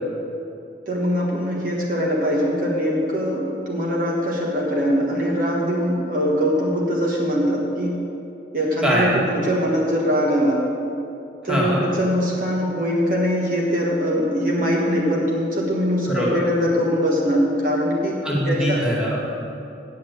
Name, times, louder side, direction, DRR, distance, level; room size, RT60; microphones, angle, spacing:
voice 1, 0.9-8.0 8.5-10.6 11.4-18.2 18.4-18.8, equal, 45° right, -3 dB, 1.6 m, -22 dB
voice 2, 8.8-9.2 11.4-11.8 16.1-16.4 18.2-19.2, equal, 5° right, -6 dB, 2.1 m, -22 dB
8.5 x 8.4 x 8.1 m, 2.7 s
head